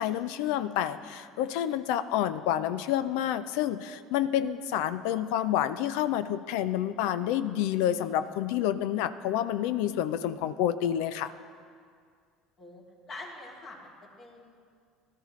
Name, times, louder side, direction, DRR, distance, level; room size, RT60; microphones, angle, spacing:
voice 1, 0.0-11.3, left 11 dB, 70° left, 13 dB, 0.4 m, -29 dB
voice 2, 12.6-14.5, left 2 dB, 45° left, -2 dB, 2.9 m, -46 dB
16.5 x 12.5 x 3.2 m, 2.1 s
hypercardioid pair, 75°, 0 cm